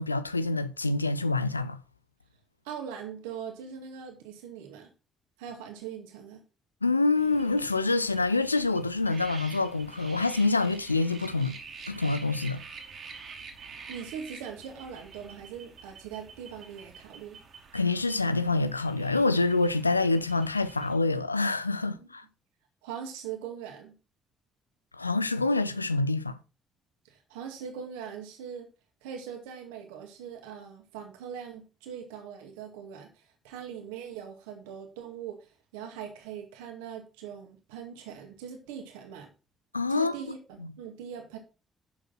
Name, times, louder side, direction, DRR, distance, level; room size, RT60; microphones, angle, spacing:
voice 1, 0.0-1.8 6.8-11.6 11.9-12.6 17.7-22.2 24.9-26.4 39.7-40.1 40.6-40.7, left 3 dB, 85° left, 0.4 m, -26 dB
voice 2, 2.6-4.9 5.4-6.4 13.9-17.4 21.9-22.1 22.8-23.9 27.0-28.7 29.0-33.1 33.4-35.4 35.7-39.3 39.9-41.4, right 8 dB, 70° right, 2.1 m, -41 dB
sound 1, 7.1-21.0, right 5 dB, 55° right, 2.5 m, -48 dB
10.5 x 7.2 x 4.3 m
figure-of-eight pair, 40°, 0 cm